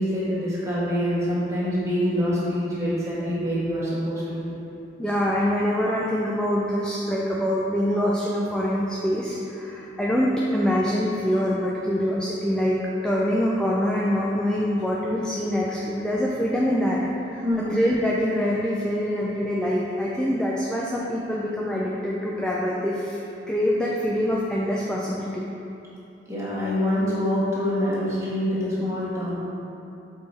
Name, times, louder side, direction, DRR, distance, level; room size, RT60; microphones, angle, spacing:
voice 1, 0.0-4.5 17.4-17.7 26.3-29.3, equal, 15° right, -8 dB, 1.4 m, -25 dB
voice 2, 5.0-17.0 17.3-23.2 23.5-25.5, equal, 5° left, -5 dB, 0.4 m, -25 dB
6.7 x 4.6 x 4.1 m, 2.9 s
head